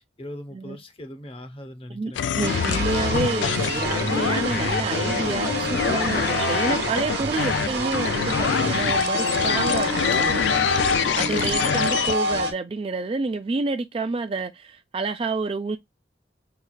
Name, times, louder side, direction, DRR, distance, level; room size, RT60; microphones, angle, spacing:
voice 1, 0.0-2.3 11.5-11.9, left 1 dB, 30° left, 0.8 m, -40 dB
voice 2, 1.9-15.8, right 3 dB, 30° right, 0.4 m, -29 dB
sound 1, 2.2-12.2, left 8 dB, 90° left, 0.3 m, -25 dB
sound 2, 2.4-12.5, right 1 dB, 70° right, 1.0 m, -27 dB
5.7 x 2.4 x 2.2 m
head